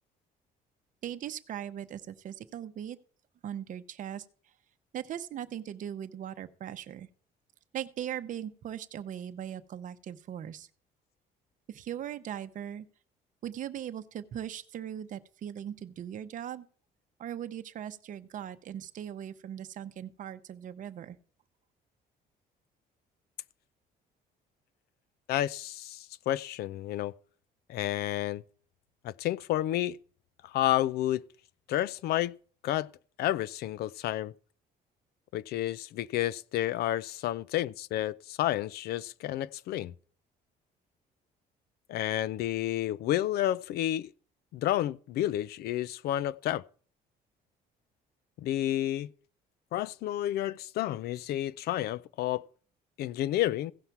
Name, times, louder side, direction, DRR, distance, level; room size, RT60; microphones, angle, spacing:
voice 1, 1.0-3.0 3.4-4.2 4.9-7.1 7.7-10.7 11.7-12.9 13.4-16.7 17.2-21.2, right 10 dB, 50° right, 0.7 m, -39 dB
voice 2, 25.3-27.1 27.7-28.4 29.0-30.0 30.4-31.2 31.7-32.3 32.6-32.9 33.2-34.3 35.3-39.9 41.9-44.1 44.5-46.6 48.4-49.1 49.7-52.4 53.0-53.7, left 13 dB, 70° left, 0.4 m, -30 dB
16.0 x 5.7 x 4.6 m
cardioid pair, 110°, 17 cm